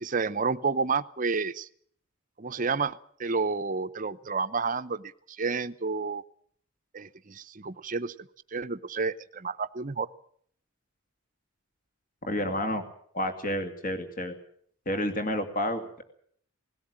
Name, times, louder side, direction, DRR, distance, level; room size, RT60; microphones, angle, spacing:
voice 1, 0.0-1.7 2.4-6.2 6.9-8.1 8.5-10.1, right 4 dB, 40° right, 13 dB, 0.8 m, -30 dB
voice 2, 12.2-12.8 13.1-14.3 14.9-16.0, left 1 dB, 40° left, 6 dB, 2.5 m, -30 dB
19.0 x 17.0 x 8.9 m, 0.62 s
head